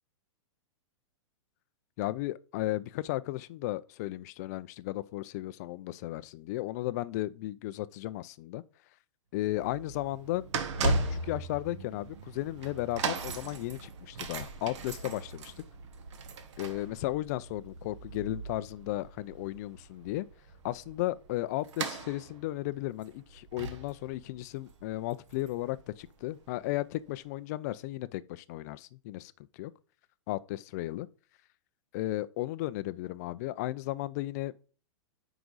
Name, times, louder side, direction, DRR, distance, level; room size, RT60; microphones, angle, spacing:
voice 1, 2.0-8.6 9.3-10.5 10.8-15.5 16.6-20.3 20.6-29.7 30.3-31.1 31.9-34.7, left 16 dB, 30° left, 0.4 m, -35 dB
sound 1, 9.4-26.4 27.1-27.2, right 3 dB, 60° right, 1.5 m, -38 dB
9.5 x 5.0 x 4.0 m
hypercardioid pair, 160°, 17 cm